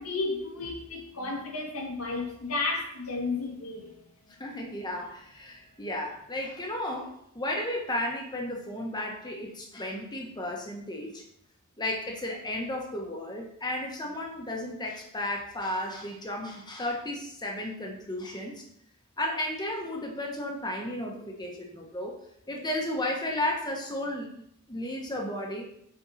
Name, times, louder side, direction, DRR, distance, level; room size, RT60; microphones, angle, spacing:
voice 1, 0.0-4.0, left 3 dB, 80° left, 1 dB, 1.7 m, -32 dB
voice 2, 4.4-11.2 11.8-18.6 19.2-22.2 22.5-25.7, left 1 dB, 20° left, 0 dB, 1.3 m, -34 dB
7.6 x 4.6 x 4.2 m, 0.72 s
head